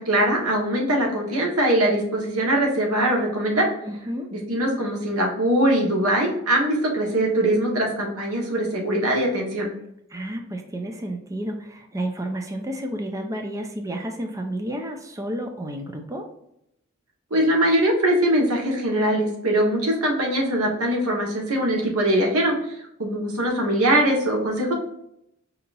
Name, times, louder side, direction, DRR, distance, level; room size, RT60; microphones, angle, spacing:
voice 1, 0.0-3.7 4.3-9.7 17.3-24.7, right 1 dB, 90° right, 0 dB, 1.3 m, -22 dB
voice 2, 3.8-4.3 10.1-16.3, right 1 dB, 15° right, 4 dB, 0.5 m, -31 dB
5.3 x 2.8 x 2.5 m, 0.78 s
head